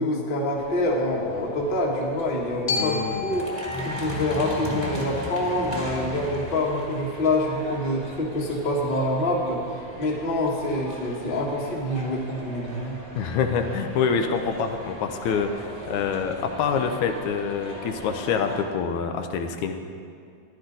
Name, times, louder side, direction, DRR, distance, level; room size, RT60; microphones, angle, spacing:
voice 1, 0.0-3.5 3.8-9.6 10.0-13.0, left 1 dB, 25° left, -3 dB, 1.1 m, -26 dB
sound 1, 0.5-18.6, right 1 dB, 15° right, 1.5 m, -38 dB
voice 2, 2.7-3.4 13.2-19.8, left 6 dB, 80° left, 6 dB, 2.1 m, -26 dB
Glockenspiel, 2.7-6.8, left 5 dB, 65° left, 1.2 m, -34 dB
14.0 x 11.0 x 3.9 m, 2.4 s
omnidirectional pair, 3.4 m